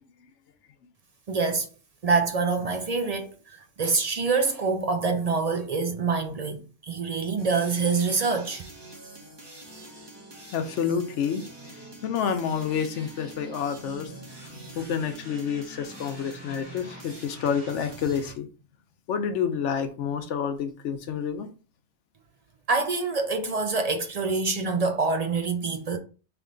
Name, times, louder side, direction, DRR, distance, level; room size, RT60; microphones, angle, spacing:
voice 1, 1.3-1.7 2.0-8.6 22.7-26.0, right 4 dB, 50° right, 0.4 m, -26 dB
sound 1, 7.4-18.3, right 1 dB, 20° right, 1.1 m, -44 dB
voice 2, 10.5-11.4 12.0-14.1 14.4-18.5 19.1-21.5, left 7 dB, 80° left, 1.0 m, -29 dB
3.4 x 3.0 x 3.8 m
omnidirectional pair, 1.2 m